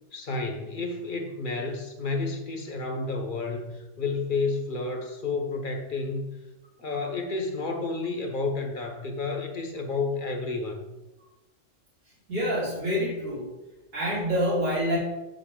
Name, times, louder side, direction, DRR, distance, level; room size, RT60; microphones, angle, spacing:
voice 1, 0.1-6.4 6.8-10.9, left 3 dB, 45° left, 4 dB, 1.1 m, -31 dB
voice 2, 12.3-13.5 13.9-15.0, equal, 90° right, -9 dB, 3.9 m, -26 dB
7.8 x 7.7 x 3.7 m, 1.0 s
omnidirectional pair, 1.3 m